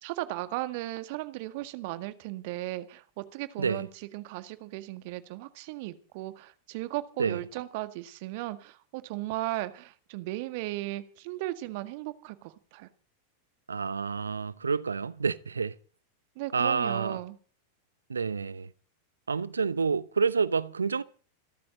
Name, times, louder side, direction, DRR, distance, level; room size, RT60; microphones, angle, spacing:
voice 1, 0.0-12.9 16.4-17.4, right 17 dB, 50° right, 1.7 m, -36 dB
voice 2, 3.6-3.9 7.2-7.4 13.7-15.7 16.5-17.2 18.1-18.7 19.3-21.0, right 5 dB, 75° right, 0.8 m, -28 dB
27.0 x 13.0 x 4.0 m
figure-of-eight pair, 90°, 0 cm